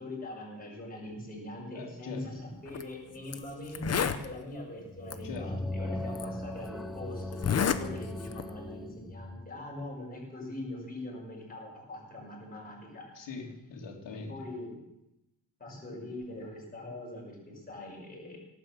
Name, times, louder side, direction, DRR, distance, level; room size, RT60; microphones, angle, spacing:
voice 1, 0.0-13.3 14.3-14.7 15.6-18.4, left 1 dB, 20° left, -2 dB, 5.8 m, -42 dB
voice 2, 1.7-2.2 5.2-5.7 13.1-14.3, left 4 dB, 80° left, 1 dB, 3.2 m, -42 dB
Zipper (clothing), 2.7-2.8 3.3-3.4 3.7-4.2 5.1-5.2 6.1-6.2 7.3-7.8 8.2-8.5, left 7 dB, 35° left, 0.8 m, -29 dB
sound 1, 4.9-9.5, left 1 dB, ahead, 0.8 m, -38 dB
18.0 x 8.9 x 7.5 m, 0.91 s
wide cardioid pair, 180°, 43 cm